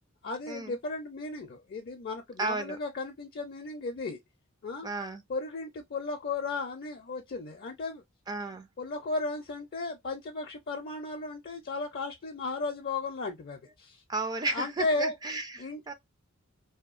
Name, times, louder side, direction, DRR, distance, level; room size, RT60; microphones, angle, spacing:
voice 1, 0.2-4.2 4.6-4.9 5.3-8.0 8.8-14.0 14.5-15.1 15.6-15.9, left 3 dB, 45° left, 0.5 m, -35 dB
voice 2, 2.4-2.8 4.8-5.2 8.3-8.7 14.1-15.9, right 3 dB, 20° right, 0.4 m, -33 dB
2.7 x 2.2 x 2.4 m
head